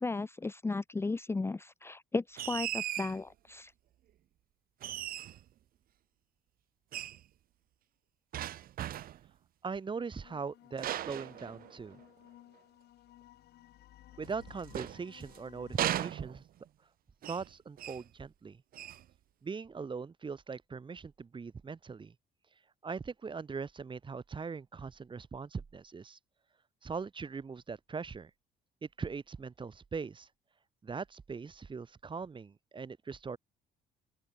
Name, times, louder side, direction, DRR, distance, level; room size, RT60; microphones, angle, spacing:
voice 1, 0.0-3.7, left 3 dB, 15° left, 0.8 m, -35 dB
sound 1, 2.4-3.2 4.8-5.5 6.9-7.2 8.3-9.3 10.8-12.0 14.2-15.4 15.8-16.7 17.2-17.5 17.8-18.1 18.7-19.1, right 12 dB, 60° right, 1.1 m, -37 dB
voice 2, 9.6-12.0 14.2-16.4 17.2-18.6 19.4-22.1 22.8-26.2 26.8-28.3 28.8-30.3 30.8-33.4, right 5 dB, 30° right, 5.2 m, -41 dB
sound 2, 10.2-16.0, left 14 dB, 70° left, 4.4 m, -57 dB
open air
cardioid pair, 110°, 17 cm